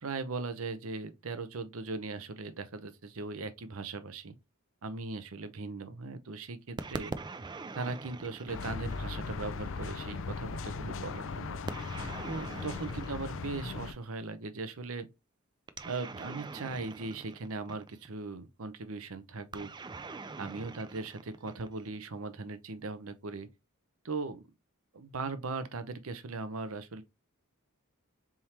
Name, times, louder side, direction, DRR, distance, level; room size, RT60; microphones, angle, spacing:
voice 1, 0.0-4.3 4.8-7.1 7.7-11.6 12.3-15.1 15.8-19.7 20.4-23.5 24.0-24.5 24.9-27.0, right 3 dB, 70° right, 0.7 m, -39 dB
sound 1, 6.8-9.4 11.7-14.0 15.7-18.1 19.5-22.0, right 3 dB, 20° right, 0.4 m, -43 dB
sound 2, 8.5-13.9, left 4 dB, 65° left, 0.5 m, -38 dB
4.4 x 3.6 x 2.9 m
head